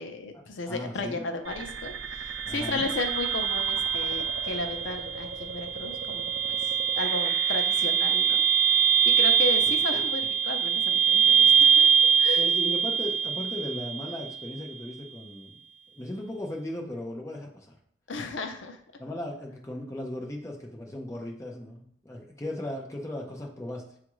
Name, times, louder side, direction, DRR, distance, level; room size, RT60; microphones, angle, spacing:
voice 1, 0.0-6.3 6.6-8.8 9.0-11.9 12.2-12.5 18.1-18.8, left 3 dB, 80° left, 6 dB, 0.5 m, -34 dB
voice 2, 0.7-1.2 2.4-2.9 12.4-15.6 16.0-17.8 19.0-23.8, left 1 dB, 15° left, -1 dB, 0.5 m, -37 dB
sound 1, 1.5-14.5, right 7 dB, 70° right, 0.4 m, -24 dB
6.9 x 2.4 x 3.0 m, 0.68 s
head